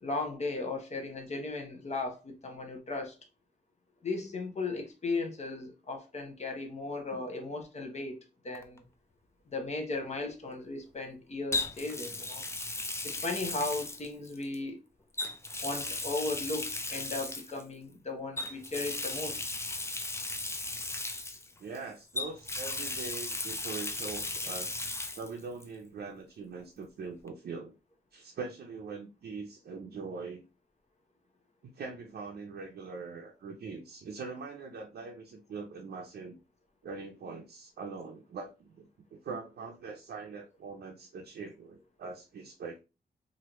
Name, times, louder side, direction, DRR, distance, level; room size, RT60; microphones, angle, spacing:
voice 1, 0.0-3.2 4.0-8.2 8.4-8.8 9.5-12.4 13.0-14.8 15.6-19.4, left 3 dB, 40° left, 0.9 m, -36 dB
Water tap faucet, 8.5-8.8 11.5-14.6 15.1-17.6 18.4-21.8 22.1-25.3 25.6-25.7 27.3-27.4, left 2 dB, 15° left, 0.4 m, -36 dB
voice 2, 21.6-24.8 25.1-27.7 28.1-30.4 31.7-36.4 36.8-42.8, right 4 dB, 75° right, 0.5 m, -42 dB
3.0 x 2.6 x 2.9 m
wide cardioid pair, 110°, 17 cm